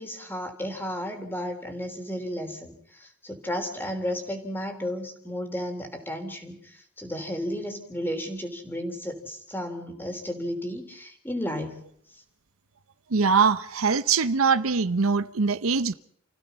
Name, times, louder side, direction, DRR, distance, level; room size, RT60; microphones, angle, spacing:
voice 1, 0.0-11.8, equal, 10° left, 3.6 m, -33 dB
voice 2, 13.1-15.9, right 5 dB, 75° right, 0.8 m, -22 dB
29.5 x 16.0 x 5.7 m
head